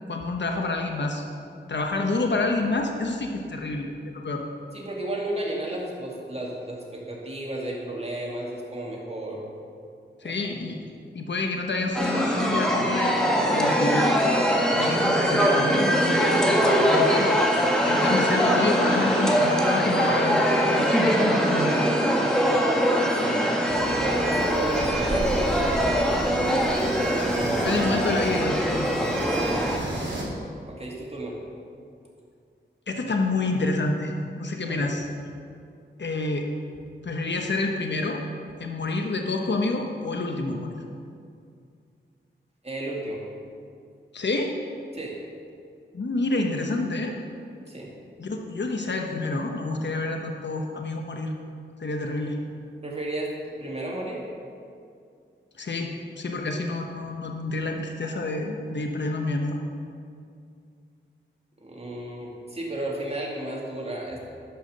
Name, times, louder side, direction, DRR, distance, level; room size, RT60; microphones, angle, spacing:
voice 1, 0.1-1.2 1.7-4.4 10.2-10.8 11.1-14.1 14.7-17.4 17.9-20.5 20.7-21.7 27.6-28.9 32.9-35.1 36.0-36.5 37.0-38.2 38.6-40.8 44.1-44.5 45.9-47.2 48.2-51.3 51.8-52.4 55.6-59.6, left 2 dB, 65° left, 3 dB, 1.0 m, -28 dB
voice 2, 4.7-9.4 10.2-10.4 23.1-23.4 23.8-26.5 27.5-27.8 29.4-29.6 30.6-31.4 34.6-34.9 42.6-43.3 44.9-45.2 47.7-47.9 52.8-54.2 61.6-64.2, right 1 dB, 30° right, -2 dB, 2.6 m, -33 dB
sound 1, 11.9-29.8, equal, 5° left, 1.7 m, -22 dB
sound 2, 23.7-30.2, right 1 dB, 70° right, 3.1 m, -33 dB
11.5 x 5.8 x 6.7 m, 2.4 s
cardioid pair, 50°, 20 cm